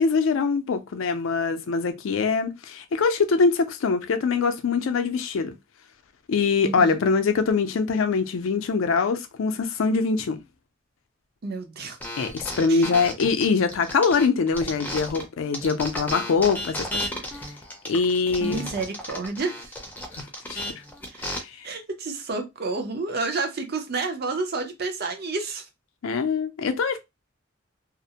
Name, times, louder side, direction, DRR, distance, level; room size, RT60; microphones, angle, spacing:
voice 1, 0.0-5.5 6.3-10.4 12.2-16.9 17.8-18.6 20.2-20.8 21.3-21.5 26.0-27.0, left 4 dB, 90° left, 0.4 m, -23 dB
voice 2, 6.6-7.0 11.4-12.0 12.7-12.8 18.4-19.7 21.1-21.3 21.6-25.7, right 3 dB, 50° right, 0.6 m, -30 dB
sound 1, 12.0-15.2 15.5-21.4, left 1 dB, 10° left, 0.5 m, -33 dB
2.5 x 2.0 x 2.7 m
head